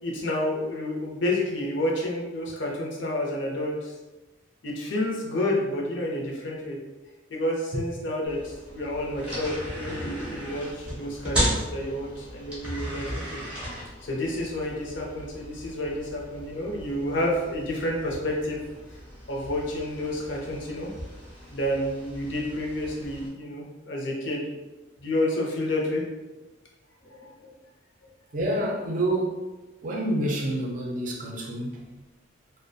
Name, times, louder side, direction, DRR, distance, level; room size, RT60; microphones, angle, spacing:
voice 1, 0.0-3.9 4.6-6.8 7.3-13.4 14.0-18.6 19.3-20.9 21.5-24.6 25.0-26.0 27.0-27.3, left 1 dB, 70° left, -2 dB, 0.6 m, -29 dB
sound 1, 8.3-23.3, equal, 5° right, 0.7 m, -36 dB
voice 2, 28.3-29.4 29.8-31.9, right 1 dB, 40° right, -1 dB, 0.4 m, -28 dB
2.4 x 2.1 x 2.6 m, 1.1 s
head